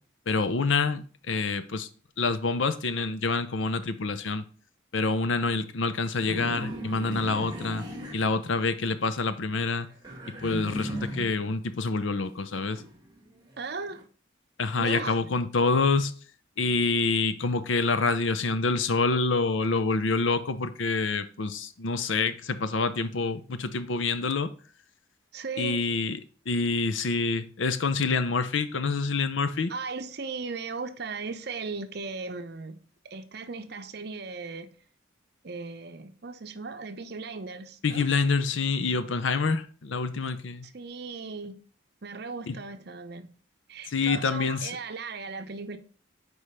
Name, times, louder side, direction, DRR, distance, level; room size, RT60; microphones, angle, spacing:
voice 1, 0.3-1.9 2.2-4.4 4.9-7.8 8.1-9.9 10.3-12.8 14.6-16.1 16.6-24.5 25.6-26.2 26.5-29.7 37.8-40.7 42.5-42.6 43.9-44.8, left 4 dB, 70° left, 0.6 m, -27 dB
sound 1, 6.3-8.9 9.3-11.5 12.0-14.0, equal, 20° right, 1.2 m, -38 dB
voice 2, 13.6-14.0 14.8-15.1 25.3-25.8 29.7-32.8 33.1-34.7 35.4-38.1 40.7-41.6 42.0-43.3 43.7-45.8, right 4 dB, 55° right, 0.6 m, -37 dB
4.9 x 4.7 x 5.6 m
head